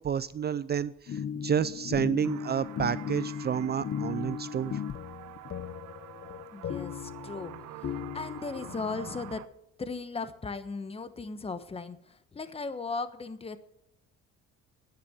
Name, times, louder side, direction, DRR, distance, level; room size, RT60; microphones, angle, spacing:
voice 1, 0.0-4.8, right 8 dB, 35° right, 16 dB, 0.5 m, -30 dB
sound 1, 1.1-9.3, left 8 dB, 45° left, 1.1 m, -37 dB
sound 2, 2.2-9.5, right 14 dB, 75° right, 1.0 m, -47 dB
voice 2, 6.5-9.4 9.8-13.6, left 4 dB, 20° left, 11 dB, 1.2 m, -37 dB
10.5 x 10.5 x 7.1 m, 0.79 s
cardioid pair, 100°, 29 cm